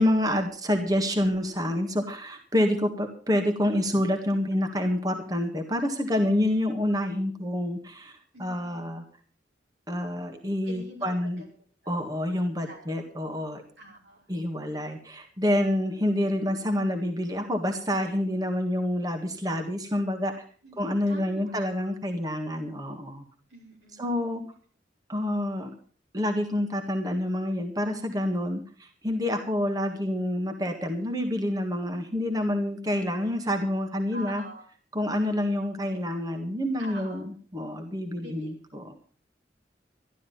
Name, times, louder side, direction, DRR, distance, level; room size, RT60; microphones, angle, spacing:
voice 1, 0.0-8.1 8.4-9.0 9.9-11.4 11.9-13.6 14.3-20.3 20.8-23.2 24.0-24.4 25.1-25.7 26.1-34.4 34.9-39.1, left 1 dB, 20° right, 5 dB, 1.7 m, -28 dB
voice 2, 8.3-8.9 10.6-11.5 11.8-12.0 12.7-12.9 13.8-14.2 20.6-20.8 21.1-21.5 23.5-24.0 34.1-34.6 36.8-37.2 38.2-38.5, right 1 dB, 90° right, 0 dB, 5.4 m, -45 dB
13.0 x 12.0 x 5.5 m, 0.43 s
head